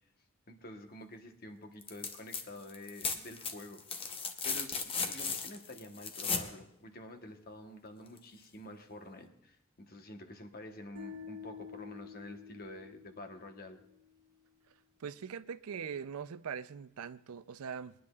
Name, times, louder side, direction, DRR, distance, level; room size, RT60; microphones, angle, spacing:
voice 1, 0.5-3.8 4.4-13.8, left 1 dB, 45° left, 1.1 m, -48 dB
sound 1, 1.8-2.4 2.7-6.5 8.2-8.3, left 5 dB, 25° left, 0.8 m, -36 dB
sound 2, 11.0-14.1, left 7 dB, 75° right, 1.0 m, -49 dB
voice 2, 15.0-17.9, right 7 dB, 90° right, 0.5 m, -41 dB
22.0 x 10.0 x 2.4 m
head